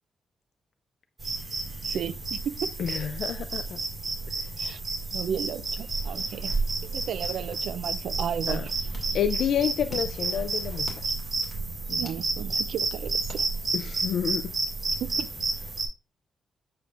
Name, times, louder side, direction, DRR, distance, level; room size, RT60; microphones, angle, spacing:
sound 1, 1.2-15.9, right 3 dB, 25° right, 3.7 m, -31 dB
voice 1, 1.8-2.7 4.6-4.8 5.1-6.5 6.8-8.7 11.9-13.4 15.0-15.3, right 8 dB, 75° right, 0.4 m, -34 dB
voice 2, 2.8-3.8 8.5-8.6 9.1-10.9 13.7-14.5, left 8 dB, 70° left, 0.4 m, -29 dB
sound 2, 8.4-14.1, left 3 dB, 30° left, 2.3 m, -49 dB
8.1 x 6.8 x 2.5 m
wide cardioid pair, 170°, 0 cm